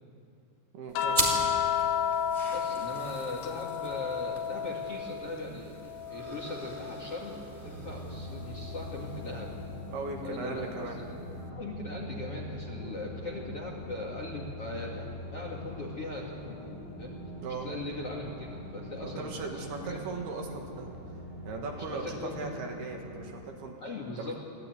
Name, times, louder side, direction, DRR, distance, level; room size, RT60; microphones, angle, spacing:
voice 1, 0.7-1.2 9.9-11.0 12.8-13.0 17.4-17.7 19.0-20.9 21.4-23.8 24.2-24.4, right 4 dB, 65° right, 2 dB, 3.4 m, -38 dB
sound 1, 0.9-5.4 5.8-7.4 8.9-9.1, left 8 dB, 75° left, 3.2 m, -32 dB
sound 2, 1.1-10.1, right 1 dB, 20° right, 2.2 m, -39 dB
voice 2, 2.5-5.7 6.1-9.5 10.2-11.1 11.5-15.1 15.3-17.2 17.5-20.0 21.8-22.5 23.8-24.4, left 2 dB, 45° left, -1 dB, 2.1 m, -39 dB
sound 3, 7.6-23.3, left 1 dB, 20° left, 6.9 m, -43 dB
24.5 x 15.5 x 9.3 m, 2.6 s
omnidirectional pair, 5.4 m